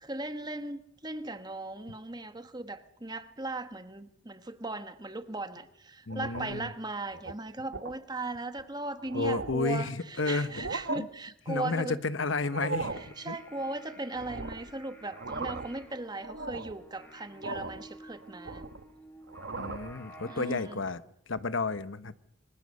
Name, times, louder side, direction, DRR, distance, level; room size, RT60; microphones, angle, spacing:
voice 1, 0.0-12.0 13.0-18.7 20.3-20.8, right 2 dB, 20° right, 1.4 m, -38 dB
voice 2, 6.1-6.7 9.1-10.7 10.9-11.1 11.5-12.9 13.3-13.4 19.6-22.1, left 3 dB, 85° left, 1.1 m, -32 dB
sound 1, 6.1-6.7 7.1-7.3 7.7-8.0 8.6-8.7 9.0-9.7 10.4-11.0 12.4-13.1 14.2-14.7 15.1-15.8 16.2-16.8 17.4-17.9 18.2-18.9 19.3-19.9, right 3 dB, 70° right, 1.2 m, -38 dB
sound 2, 12.3-20.8, equal, 10° left, 4.8 m, -52 dB
25.5 x 24.5 x 6.7 m
head